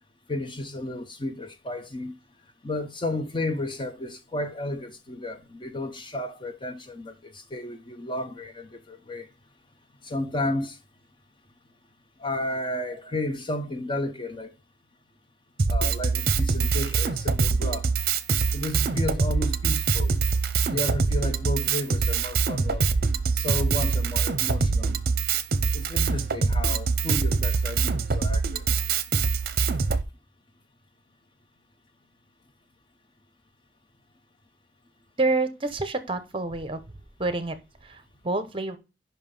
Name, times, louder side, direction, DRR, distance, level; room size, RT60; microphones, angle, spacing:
voice 1, 0.3-2.2 2.6-9.3 10.0-10.8 12.2-14.6 15.7-17.9 18.5-20.1 20.6-22.9 23.4-25.0 25.7-28.7, left 1 dB, 25° left, 0.6 m, -32 dB
Drum kit, 15.6-30.0, right 4 dB, 55° right, 0.6 m, -24 dB
voice 2, 35.2-36.8 37.2-38.8, right 2 dB, 30° right, 0.9 m, -28 dB
5.6 x 5.3 x 5.4 m
head